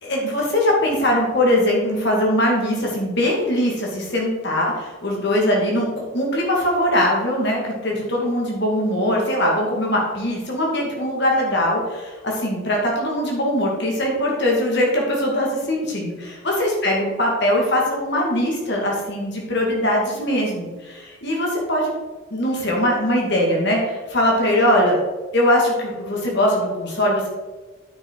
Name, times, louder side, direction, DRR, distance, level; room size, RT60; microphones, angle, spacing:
voice 1, 0.0-21.9 22.3-25.0 25.3-27.3, left 1 dB, 55° left, -2 dB, 2.3 m, -21 dB
9.4 x 5.8 x 4.7 m, 1.3 s
head